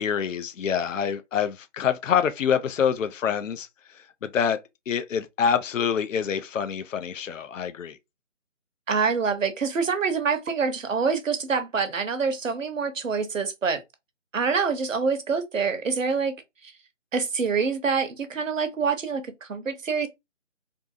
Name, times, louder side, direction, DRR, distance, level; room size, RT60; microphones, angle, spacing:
voice 1, 0.0-3.7 3.9-4.6 4.9-8.0, left 7 dB, 80° left, 0.5 m, -26 dB
voice 2, 8.9-13.8 14.3-16.3 16.6-16.7 17.1-20.1, right 5 dB, 85° right, 0.8 m, -26 dB
2.6 x 2.5 x 2.5 m
figure-of-eight pair, 160°, 38 cm